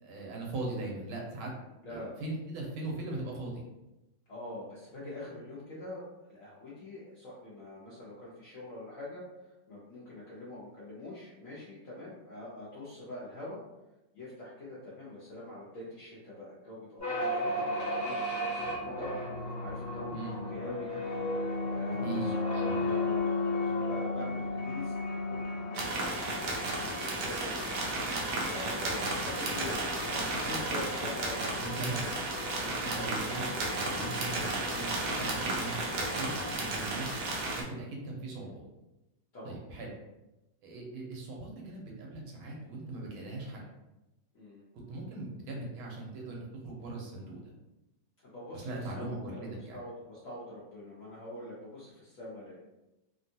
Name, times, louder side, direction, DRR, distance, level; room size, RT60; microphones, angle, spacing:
voice 1, 0.0-1.5 1.9-3.6 20.1-20.3 22.0-22.9 31.6-32.0 32.6-37.1 37.7-38.7 39.4-39.9 40.6-43.7 44.9-47.5 48.5-49.8, right 2 dB, 85° right, -2 dB, 1.6 m, -40 dB
voice 2, 4.3-6.0 6.3-9.2 9.7-13.6 14.1-21.0 21.7-23.4 23.7-32.1 38.3-38.5 39.3-39.5 44.3-44.6 48.3-52.6, left 1 dB, 60° left, -7 dB, 0.8 m, -44 dB
sound 1, 17.0-25.8, left 2 dB, 20° left, 0.4 m, -33 dB
sound 2, 21.0-36.6, left 3 dB, 80° left, 1.4 m, -43 dB
sound 3, 25.7-37.6, right 2 dB, 70° right, 1.1 m, -33 dB
3.5 x 2.3 x 2.6 m, 0.96 s
omnidirectional pair, 2.2 m